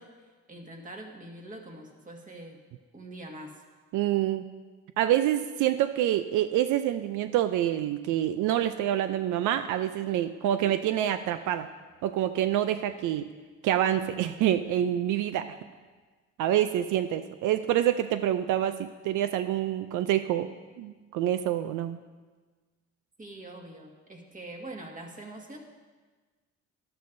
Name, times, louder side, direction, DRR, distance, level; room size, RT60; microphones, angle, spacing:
voice 1, 0.0-2.6 2.9-3.6 23.2-25.6, right 1 dB, 25° right, 1 dB, 1.7 m, -44 dB
voice 2, 3.9-4.4 5.0-11.7 12.0-13.2 13.6-15.5 16.4-20.5 20.8-22.0, right 11 dB, 85° right, 10 dB, 0.5 m, -27 dB
12.0 x 12.0 x 2.6 m, 1.4 s
cardioid pair, 90°, 30 cm